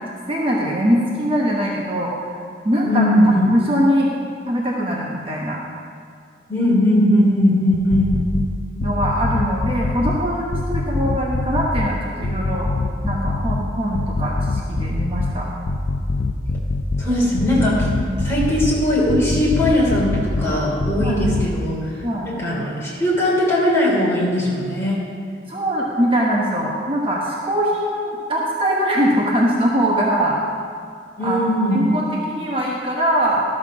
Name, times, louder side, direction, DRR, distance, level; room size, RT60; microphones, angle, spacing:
voice 1, 0.3-2.3 2.6-3.0 3.5-4.1 4.5-5.6 8.8-12.7 13.0-15.5 18.1-18.2 21.0-21.2 22.0-22.3 25.5-30.4 31.2-31.4 31.7-33.4, equal, 30° right, -3 dB, 1.1 m, -22 dB
voice 2, 2.9-3.5 6.5-8.1 17.0-17.9 18.2-25.0 31.2-31.8, left 1 dB, 15° left, -6 dB, 3.0 m, -19 dB
sound 1, 7.7-8.5 8.8-10.2 10.5-11.9 12.2-13.6 13.9-15.3 15.7-17.0 17.4-18.8 19.1-20.5 20.8-21.5, left 3 dB, 50° left, 0.5 m, -23 dB
12.5 x 6.5 x 6.1 m, 2.2 s
head